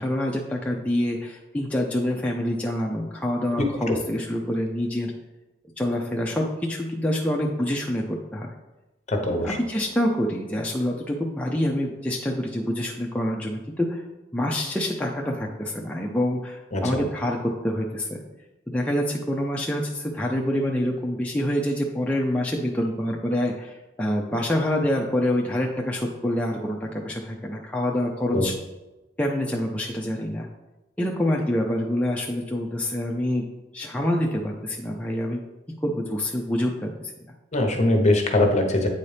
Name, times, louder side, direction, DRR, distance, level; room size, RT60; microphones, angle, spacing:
voice 1, 0.0-5.1 5.8-8.5 9.3-14.0 14.3-18.2 18.7-28.5 29.2-30.5 31.0-33.5 33.7-35.4 35.8-37.1, left 1 dB, 5° left, -2 dB, 0.5 m, -26 dB
voice 2, 3.5-4.0 9.1-9.6 16.7-17.0 28.3-28.4 37.5-38.9, left 1 dB, 40° left, 4 dB, 0.9 m, -22 dB
8.6 x 4.1 x 3.3 m, 1.1 s
head